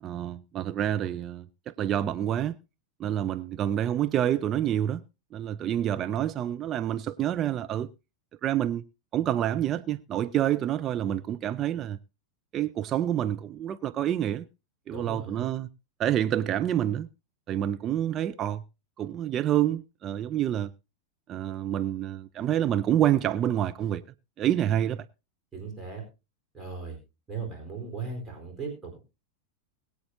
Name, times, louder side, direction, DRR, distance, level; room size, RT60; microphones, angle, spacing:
voice 1, 0.0-2.6 3.0-5.0 5.3-7.9 8.4-8.8 9.1-12.0 12.5-14.5 14.9-15.7 16.0-17.1 17.5-18.6 19.0-20.7 21.3-24.0 24.4-25.0, right 11 dB, 30° right, 0.5 m, -27 dB
voice 2, 14.9-15.5 25.5-26.0 26.5-27.0 27.3-29.0, right 5 dB, 15° right, 4.1 m, -37 dB
21.5 x 8.5 x 2.7 m
figure-of-eight pair, 90°, 0 cm